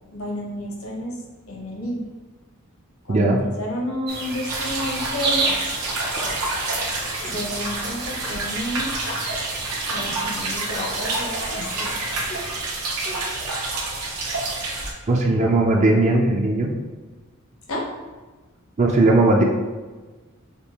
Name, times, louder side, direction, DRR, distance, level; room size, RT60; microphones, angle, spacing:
voice 1, 0.1-1.1 1.5-2.0 3.0-5.5 7.3-8.9 9.9-11.9 17.7-17.8, equal, 70° left, -2 dB, 0.9 m, -31 dB
voice 2, 3.1-3.4 15.1-16.7 18.8-19.4, right 2 dB, 35° right, 0 dB, 0.4 m, -18 dB
sound 1, 4.1-12.6, right 3 dB, 50° right, 1.0 m, -32 dB
sound 2, 4.5-14.9, right 2 dB, 85° right, 0.9 m, -28 dB
sound 3, 5.3-5.6 6.1-6.5 6.7-6.8 7.2-7.4 8.2-8.5 9.1-9.3 10.0-10.2 10.7-11.1 11.6-11.8 12.3-12.5 13.0-13.5, left 2 dB, 30° left, 0.5 m, -37 dB
5.1 x 2.3 x 2.9 m, 1.3 s
head